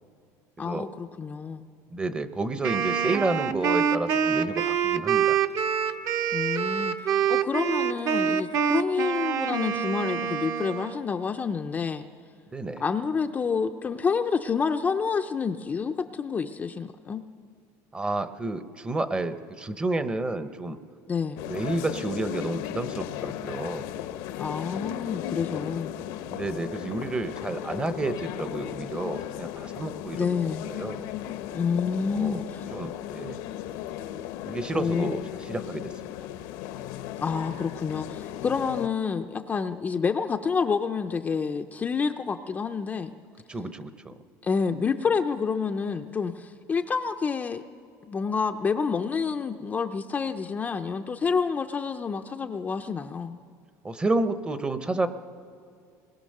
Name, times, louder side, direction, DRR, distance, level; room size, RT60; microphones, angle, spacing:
voice 1, 0.6-1.7 6.3-12.0 12.8-17.2 21.1-21.4 24.4-25.9 30.1-30.6 31.5-32.7 34.7-35.2 37.2-43.1 44.4-47.6 48.1-53.4, left 5 dB, 20° left, 5 dB, 0.5 m, -28 dB
voice 2, 1.9-5.4 12.5-12.8 17.9-20.8 21.4-23.9 26.3-30.3 30.7-31.1 32.1-32.4 32.7-33.4 34.5-35.9 43.5-44.2 53.8-55.1, right 2 dB, 15° right, 11 dB, 0.7 m, -30 dB
Wind instrument woodwind instrument, 2.6-11.0, right 7 dB, 40° right, 0.8 m, -26 dB
sound 1, 21.4-38.9, left 12 dB, 75° left, 0.9 m, -36 dB
29.0 x 20.5 x 6.6 m, 2.3 s
cardioid pair, 155°, 8 cm